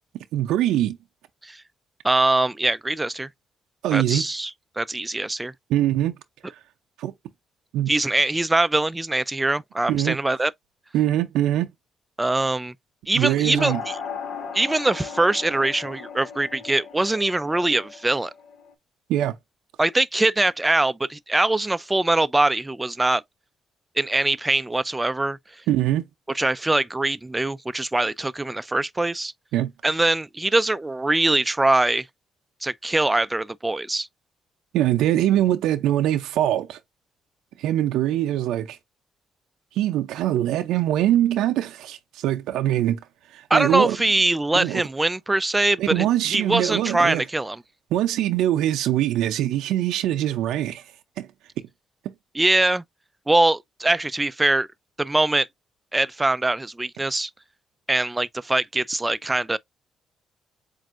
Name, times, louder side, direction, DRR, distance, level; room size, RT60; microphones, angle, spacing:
voice 1, 0.3-1.0 3.8-4.3 5.7-6.1 7.0-7.1 7.7-7.9 9.9-10.2 10.9-11.7 13.1-13.8 19.1-19.4 25.7-26.0 29.5-29.7 34.7-36.8 37.6-38.8 39.7-43.0 43.3-44.0 44.5-44.8 45.8-47.2 47.9-50.8 51.2-51.3, right 12 dB, 90° right, 0.5 m, -23 dB
voice 2, 2.0-3.3 3.9-4.5 4.8-5.5 7.9-10.5 12.2-12.7 13.1-14.0 14.5-18.3 19.8-23.2 24.0-25.4 26.3-29.3 29.8-32.1 32.6-34.1 43.5-47.6 52.3-52.8 53.3-54.7 55.0-55.5 55.9-57.3 57.9-59.6, right 2 dB, 15° right, 0.4 m, -22 dB
sound 1, 13.6-18.7, left 6 dB, 75° left, 1.4 m, -37 dB
7.5 x 2.6 x 2.5 m
cardioid pair, 90°, 0 cm